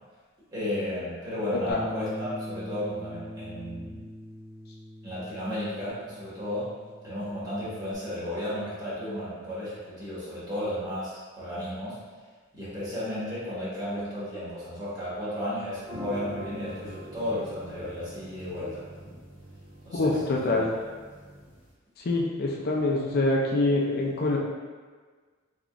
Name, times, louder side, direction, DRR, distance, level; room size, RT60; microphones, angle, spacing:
voice 1, 0.5-4.0 5.0-6.7 7.0-12.0 12.5-18.8 19.8-20.2 20.5-20.6, left 1 dB, 20° right, -11 dB, 1.5 m, -33 dB
Bass guitar, 1.7-7.9, left 1 dB, 20° left, 0.7 m, -42 dB
sound 1, 15.8-21.7, equal, 65° right, 1.3 m, -44 dB
voice 2, 19.9-20.7 22.0-24.4, left 2 dB, 50° left, -2 dB, 0.4 m, -25 dB
3.6 x 3.5 x 2.4 m, 1.5 s
head